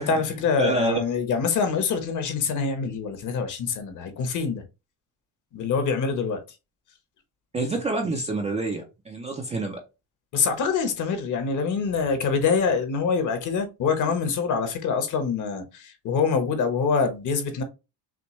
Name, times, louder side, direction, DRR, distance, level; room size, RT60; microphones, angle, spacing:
voice 1, 0.0-4.6 5.5-6.4 10.3-17.6, left 5 dB, 40° left, 1.1 m, -25 dB
voice 2, 0.6-1.0 7.5-9.8, right 3 dB, 15° right, 0.5 m, -27 dB
6.1 x 2.2 x 3.1 m
cardioid pair, 145°, 45 cm